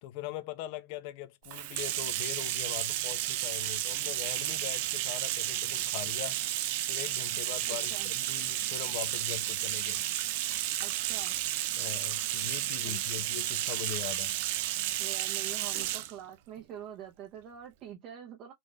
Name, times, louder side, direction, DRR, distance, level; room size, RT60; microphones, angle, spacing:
voice 1, 0.0-6.4 6.9-10.0 11.7-14.3, left 13 dB, 50° left, 0.6 m, -41 dB
Bathtub (filling or washing), 1.4-16.1, right 14 dB, 55° right, 0.6 m, -32 dB
voice 2, 7.7-8.1 10.8-11.6 12.8-13.0 15.0-18.5, right 9 dB, 35° right, 1.0 m, -45 dB
3.7 x 2.6 x 3.4 m
supercardioid pair, 140°, 0 cm